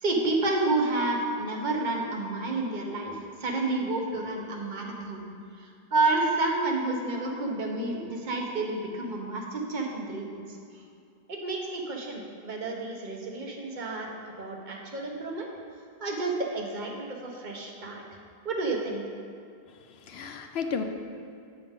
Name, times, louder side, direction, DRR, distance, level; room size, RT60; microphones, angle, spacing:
voice 1, 0.0-5.3 5.6-10.4 11.3-15.5 16.0-18.0 18.4-19.0, right 2 dB, 50° right, 0 dB, 1.1 m, -30 dB
voice 2, 19.7-20.8, left 5 dB, 75° left, 5 dB, 0.9 m, -34 dB
8.4 x 7.2 x 3.6 m, 2.4 s
omnidirectional pair, 1.1 m